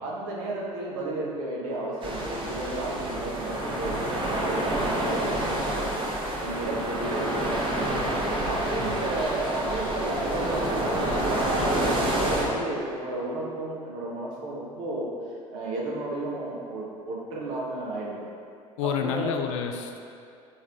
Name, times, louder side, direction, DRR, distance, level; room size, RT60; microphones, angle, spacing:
voice 1, 0.0-5.8 6.4-8.0 8.3-15.1 15.5-18.2 18.8-19.4, right 2 dB, 60° right, -4 dB, 1.3 m, -33 dB
sound 1, 2.0-12.5, right 1 dB, 30° right, 1.1 m, -28 dB
voice 2, 18.8-20.0, left 7 dB, 60° left, 5 dB, 0.5 m, -29 dB
7.1 x 3.5 x 4.1 m, 2.4 s
figure-of-eight pair, 65°, 18 cm